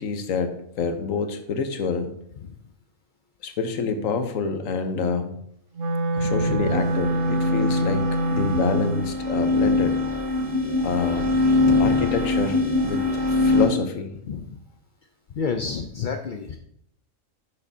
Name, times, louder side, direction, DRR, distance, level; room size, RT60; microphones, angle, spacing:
voice 1, 0.0-2.1 3.4-5.4 6.1-8.0 8.3-10.0 10.8-11.3 11.8-14.1, left 5 dB, 80° left, 8 dB, 1.2 m, -27 dB
Wind instrument woodwind instrument, 5.7-9.1, right 1 dB, 70° right, 1.2 m, -25 dB
voice 2, 6.2-6.8 8.3-8.6 11.6-12.1 14.3-14.6 15.3-16.6, left 6 dB, 60° left, 5 dB, 0.5 m, -30 dB
sound 1, 6.6-13.7, left 2 dB, 40° right, 3.1 m, -23 dB
11.0 x 6.4 x 2.7 m, 0.71 s
omnidirectional pair, 1.4 m